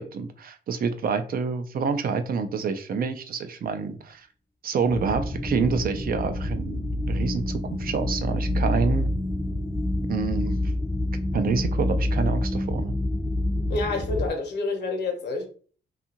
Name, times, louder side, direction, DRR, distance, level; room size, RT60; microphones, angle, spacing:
voice 1, 0.0-4.3 4.6-9.1 10.1-10.6 11.3-12.9, right 5 dB, 55° right, 0.4 m, -27 dB
sound 1, 4.9-14.3, left 1 dB, 15° left, 0.5 m, -27 dB
voice 2, 13.7-15.5, left 3 dB, 75° left, 0.8 m, -28 dB
2.7 x 2.4 x 2.8 m
cardioid pair, 100°, 18 cm